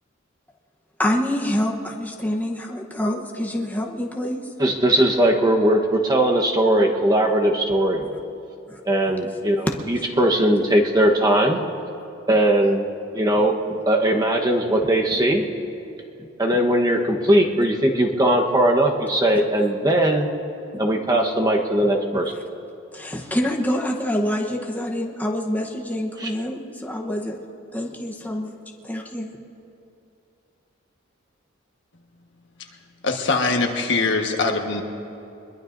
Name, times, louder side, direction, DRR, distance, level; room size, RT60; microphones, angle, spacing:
voice 1, 1.0-4.4 8.7-8.8 21.8-22.2 22.9-27.4 27.7-28.5 28.8-29.3, left 1 dB, 10° left, 0 dB, 1.0 m, -26 dB
voice 2, 4.6-8.0 8.9-11.6 12.3-12.8 13.1-13.6 13.9-15.4 16.4-20.3 20.8-22.3 26.2-26.3, right 1 dB, 20° right, 1 dB, 1.1 m, -19 dB
voice 3, 33.0-34.8, left 3 dB, 65° left, 3 dB, 1.4 m, -22 dB
23.5 x 21.5 x 2.6 m, 2.8 s
head